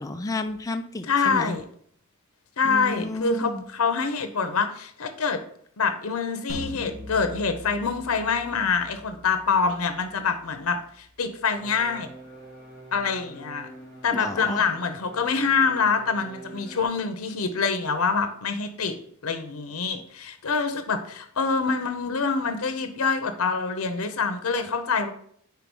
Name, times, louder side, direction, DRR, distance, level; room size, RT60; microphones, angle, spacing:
voice 1, 0.0-1.5 2.6-3.6 14.1-14.6, left 2 dB, 15° left, 6 dB, 0.4 m, -31 dB
voice 2, 1.1-1.6 2.6-5.4 5.8-12.1 12.9-13.7 14.0-19.0 19.2-25.1, left 5 dB, 90° left, 8 dB, 0.7 m, -25 dB
sound 1, 6.5-11.6, equal, 75° right, 1.6 m, -42 dB
sound 2, 11.5-16.8, right 1 dB, 45° right, 2.0 m, -45 dB
4.7 x 4.6 x 5.3 m, 0.62 s
head